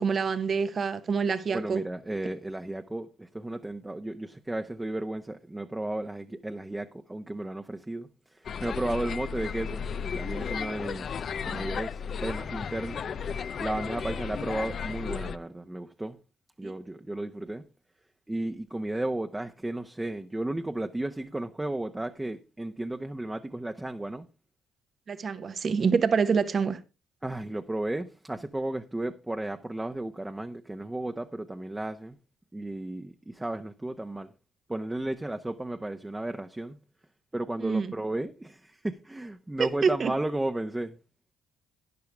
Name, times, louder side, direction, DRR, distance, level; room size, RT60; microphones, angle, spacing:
voice 1, 0.0-1.8 16.6-16.7 25.1-26.8 37.6-37.9 39.6-40.1, right 5 dB, 50° right, 1.0 m, -26 dB
voice 2, 1.5-9.8 10.1-13.0 13.3-16.2 16.6-17.7 18.3-24.3 27.2-32.2 32.5-34.3 34.7-36.8 37.3-41.0, right 1 dB, 15° right, 0.9 m, -34 dB
sound 1, 8.4-15.4, left 6 dB, 55° left, 0.6 m, -34 dB
12.0 x 10.0 x 3.4 m
supercardioid pair, 55°, 0 cm